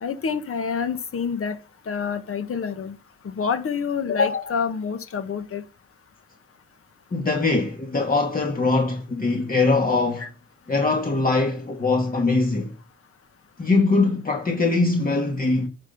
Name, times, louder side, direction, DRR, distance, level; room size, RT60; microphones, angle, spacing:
voice 1, 0.0-1.6 1.9-3.0 3.2-5.6 10.2-10.3, left 6 dB, 45° left, 1.7 m, -27 dB
voice 2, 7.1-10.3 10.7-12.7 13.6-15.7, left 3 dB, 30° left, 2.0 m, -22 dB
9.6 x 6.1 x 7.0 m
cardioid pair, 90°, 30 cm